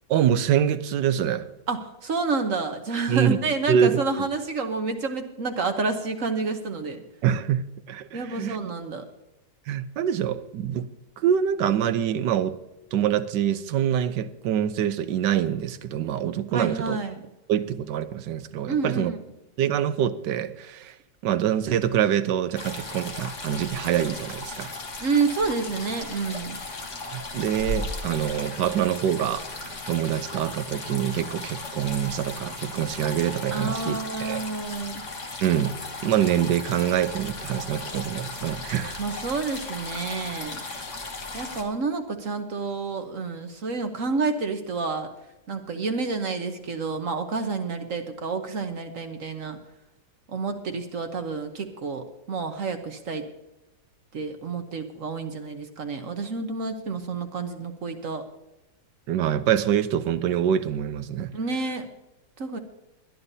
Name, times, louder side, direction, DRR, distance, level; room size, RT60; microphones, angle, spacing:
voice 1, 0.1-1.5 3.1-3.4 3.7-4.0 7.2-8.6 9.7-10.9 11.2-12.6 12.9-17.0 17.5-19.1 19.6-21.0 21.2-24.7 27.1-34.4 35.4-35.7 36.0-39.0 59.1-61.3, right 9 dB, 75° right, 11 dB, 1.3 m, -25 dB
voice 2, 1.7-7.0 8.1-9.0 16.5-17.2 18.7-19.2 25.0-26.6 33.5-35.0 39.0-40.6 41.3-45.1 45.5-49.6 50.3-53.3 54.1-58.2 61.3-61.9 62.4-62.6, right 4 dB, 50° right, 6 dB, 1.2 m, -29 dB
sound 1, 22.6-41.6, left 3 dB, 45° left, 1.8 m, -36 dB
21.0 x 11.5 x 2.7 m, 0.95 s
omnidirectional pair, 2.0 m